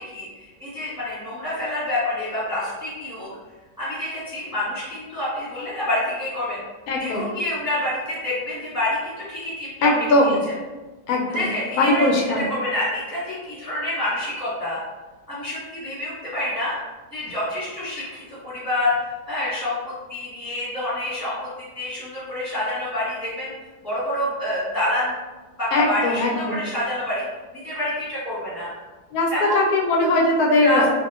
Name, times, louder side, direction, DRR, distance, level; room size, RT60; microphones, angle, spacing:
voice 1, 0.0-3.3 3.8-6.6 7.0-9.9 10.2-10.3 11.3-14.8 15.3-16.7 17.1-18.9 19.3-21.5 21.7-23.5 23.8-25.1 25.6-27.2 27.5-28.7 29.3-29.6 30.6-30.9, left 1 dB, 5° right, -12 dB, 1.1 m, -27 dB
voice 2, 6.9-7.3 9.8-10.3 11.1-11.4 11.8-12.4 25.7-26.6 29.1-30.9, left 2 dB, 70° left, -1 dB, 0.9 m, -20 dB
2.7 x 2.4 x 2.4 m, 1.2 s
omnidirectional pair, 1.8 m